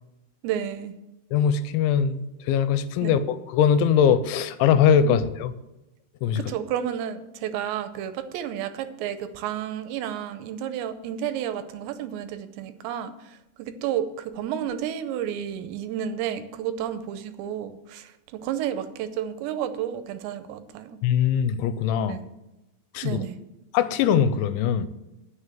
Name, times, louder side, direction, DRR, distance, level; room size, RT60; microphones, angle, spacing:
voice 1, 0.4-0.9 3.0-3.1 5.0-5.2 6.4-21.0 22.1-22.3 23.0-23.4, right 10 dB, 80° right, 10 dB, 2.7 m, -31 dB
voice 2, 1.3-5.5 6.2-6.4 21.0-22.2 22.9-23.2 23.7-24.9, left 8 dB, 85° left, 12 dB, 2.9 m, -21 dB
9.6 x 6.3 x 7.6 m, 0.97 s
omnidirectional pair, 5.4 m